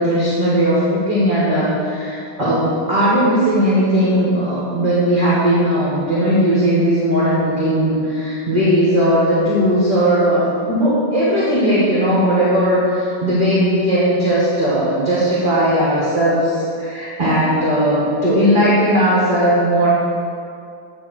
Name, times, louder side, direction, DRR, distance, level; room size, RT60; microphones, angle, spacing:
voice 1, 0.0-19.9, equal, 25° right, -9 dB, 1.5 m, -17 dB
9.5 x 3.4 x 6.3 m, 2.5 s
omnidirectional pair, 2.3 m